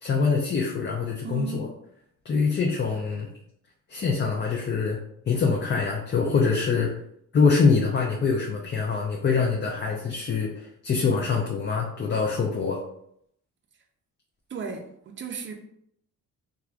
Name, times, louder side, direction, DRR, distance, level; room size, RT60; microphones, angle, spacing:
voice 1, 0.0-1.7 2.2-3.3 3.9-5.0 5.3-6.9 7.3-12.8, left 5 dB, 35° left, -1 dB, 0.5 m, -24 dB
voice 2, 1.2-1.6 14.5-15.5, right 6 dB, 40° right, 4 dB, 0.6 m, -35 dB
3.1 x 2.4 x 2.4 m, 0.71 s
cardioid pair, 90°, 30 cm